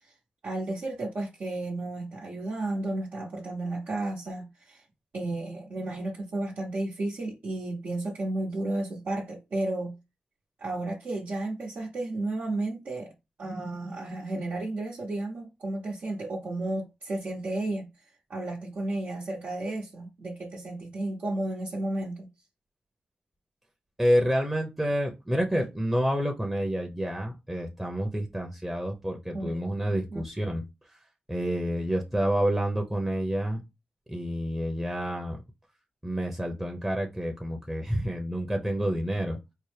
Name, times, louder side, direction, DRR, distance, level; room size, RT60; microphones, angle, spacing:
voice 1, 0.4-4.8 5.1-9.9 10.6-13.1 13.4-17.9 18.3-22.3 29.3-29.7 30.1-30.2, right 2 dB, 70° right, 0.9 m, -33 dB
voice 2, 24.0-31.0 31.3-33.6 34.1-35.4 36.0-39.4, equal, 10° right, 0.7 m, -28 dB
4.4 x 2.1 x 3.3 m
cardioid pair, 55°, 3 cm